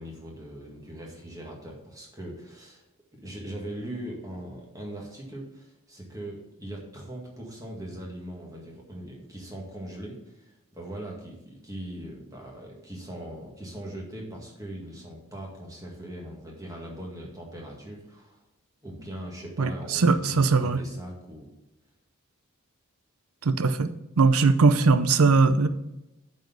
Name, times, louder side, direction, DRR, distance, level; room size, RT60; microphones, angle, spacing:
voice 1, 0.0-2.8 3.1-18.4 18.8-21.5, right 1 dB, 15° right, -2 dB, 1.8 m, -40 dB
voice 2, 19.6-20.8 23.4-23.9 24.2-25.7, right 4 dB, 90° right, 11 dB, 0.6 m, -20 dB
8.0 x 4.4 x 7.1 m, 0.92 s
head